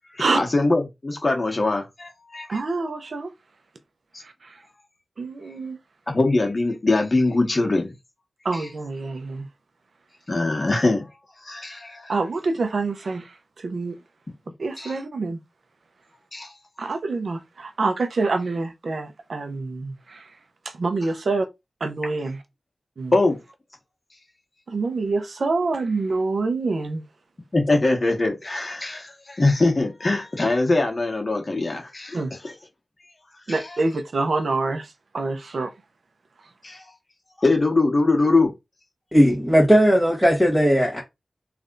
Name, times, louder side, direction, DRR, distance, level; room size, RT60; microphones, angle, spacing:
voice 1, 0.1-2.5 6.1-7.9 8.5-8.6 10.3-11.1 11.4-12.1 14.8-14.9 16.3-16.5 23.1-23.4 27.5-32.2 32.4-32.5 33.5-33.6 36.6-36.9 37.4-38.5, left 2 dB, 45° left, 1.4 m, -22 dB
voice 2, 2.5-3.3 4.2-4.6 5.2-5.8 8.4-9.5 12.1-14.0 14.6-15.4 16.8-20.4 20.6-21.5 21.8-22.4 23.0-23.1 24.7-27.0 32.1-32.3 33.5-35.7, right 3 dB, 80° right, 0.8 m, -26 dB
voice 3, 39.1-41.0, equal, 5° right, 1.7 m, -17 dB
3.3 x 2.6 x 3.8 m
cardioid pair, 40°, 0 cm